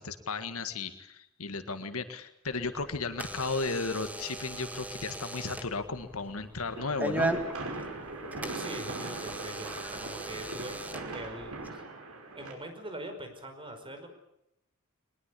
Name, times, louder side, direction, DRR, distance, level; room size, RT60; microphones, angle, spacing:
voice 1, 0.0-7.3, left 4 dB, 70° left, 9 dB, 1.8 m, -35 dB
Door / Alarm, 2.4-11.7, right 2 dB, 5° right, 2.0 m, -38 dB
sound 1, 6.7-12.5, right 2 dB, 75° right, 5.5 m, -40 dB
voice 2, 8.5-11.8 12.3-14.1, right 1 dB, 25° right, 6 dB, 5.1 m, -42 dB
22.0 x 21.0 x 8.5 m, 0.81 s
head